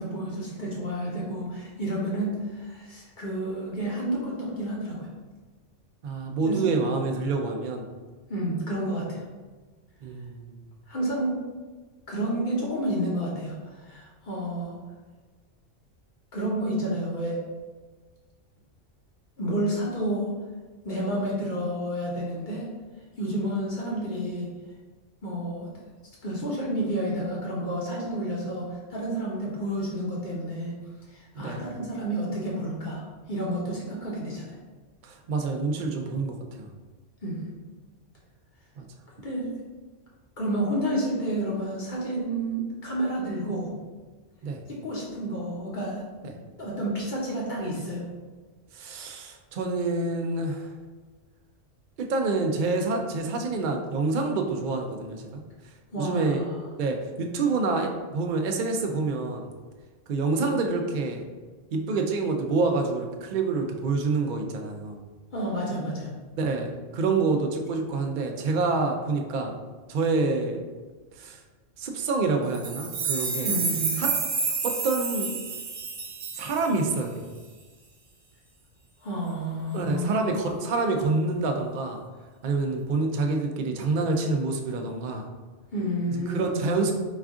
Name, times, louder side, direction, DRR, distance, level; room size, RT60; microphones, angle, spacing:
voice 1, 0.0-5.1 6.4-6.6 8.3-9.2 10.9-11.4 12.1-14.8 16.3-17.4 19.4-20.3 20.8-22.7 23.2-24.5 25.2-25.7 26.2-30.8 31.1-34.5 37.2-37.5 39.2-39.5 40.4-43.7 44.7-46.0 46.6-48.0 55.9-56.6 65.3-66.1 73.4-74.0 79.0-80.2 85.7-86.5, right 1 dB, 45° left, -4 dB, 0.9 m, -30 dB
voice 2, 6.0-7.8 10.0-10.6 31.4-31.6 35.0-36.7 38.8-38.9 44.4-44.6 46.2-46.3 48.7-50.7 52.0-55.4 56.0-56.4 56.8-59.5 60.1-61.2 61.7-65.0 66.4-69.6 69.9-70.6 71.2-71.4 71.8-73.5 74.0-74.1 74.6-75.4 76.4-77.3 79.7-82.0 82.4-85.3 86.3-86.9, right 3 dB, 60° right, 3 dB, 0.5 m, -27 dB
sound 1, 72.5-77.0, right 4 dB, 85° right, 1.1 m, -29 dB
4.1 x 2.4 x 3.5 m, 1.4 s
omnidirectional pair, 1.3 m